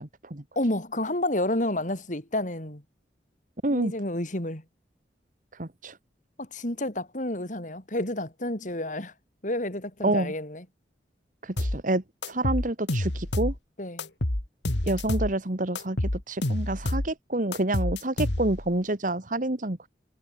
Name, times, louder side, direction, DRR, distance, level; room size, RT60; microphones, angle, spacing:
voice 1, 0.0-0.4 3.6-3.9 5.5-6.0 10.0-10.3 11.4-13.5 14.8-19.9, right 1 dB, 45° right, 1.8 m, -28 dB
voice 2, 0.6-2.8 3.7-4.6 6.4-9.1 9.4-10.6 13.8-14.1, left 1 dB, 45° left, 4.1 m, -30 dB
sound 1, 11.6-11.8 12.2-13.6 14.0-15.3 15.8-17.1 17.5-18.7, left 1 dB, 80° left, 2.5 m, -28 dB
head